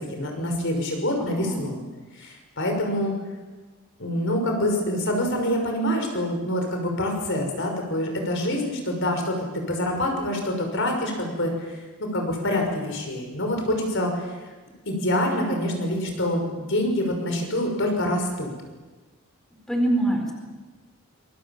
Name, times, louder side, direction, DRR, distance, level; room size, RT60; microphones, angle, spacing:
voice 1, 0.0-1.8 2.1-3.1 4.0-14.4 14.9-18.5, left 1 dB, 55° left, 3 dB, 5.9 m, -26 dB
voice 2, 1.2-1.7 19.7-20.3, right 1 dB, ahead, 2 dB, 4.3 m, -25 dB
26.5 x 22.5 x 7.4 m, 1.3 s
head